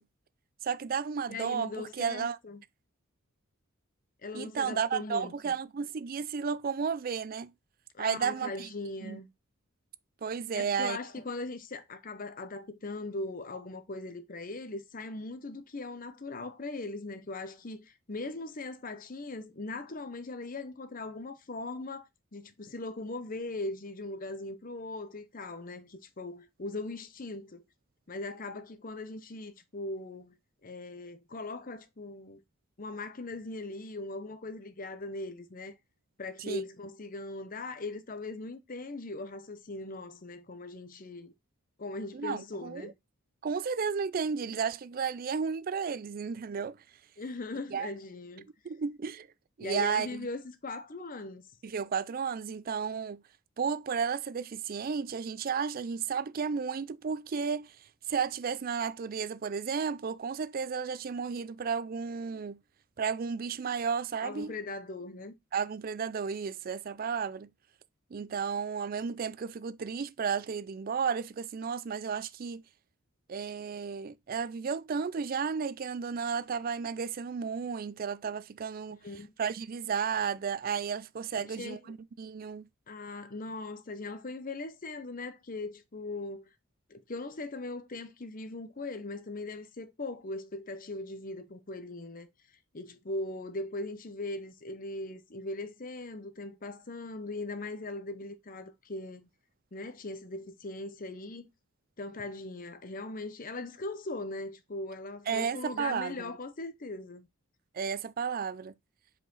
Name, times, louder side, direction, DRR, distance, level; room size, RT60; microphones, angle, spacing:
voice 1, 0.6-2.4 4.3-7.5 8.0-8.7 9.0-9.2 10.2-11.0 36.5-36.6 42.1-42.9 43.4-46.8 47.7-47.9 48.6-49.3 49.6-50.3 51.6-53.2 53.6-57.7 58.1-62.6 63.0-64.6 65.5-67.5 68.1-72.6 73.3-79.0 79.4-82.7 105.3-106.3 107.7-108.7, right 6 dB, 40° right, 0.4 m, -33 dB
voice 2, 1.3-2.6 4.2-5.5 7.9-9.3 10.5-27.6 28.1-30.4 30.6-32.4 32.8-35.8 36.2-41.3 41.8-42.9 47.2-48.5 49.6-51.5 64.2-65.3 79.0-79.3 81.4-81.9 82.9-86.4 86.9-92.3 92.7-99.3 99.7-101.5 102.0-107.3, left 2 dB, 40° left, 0.8 m, -40 dB
5.2 x 4.8 x 3.9 m
head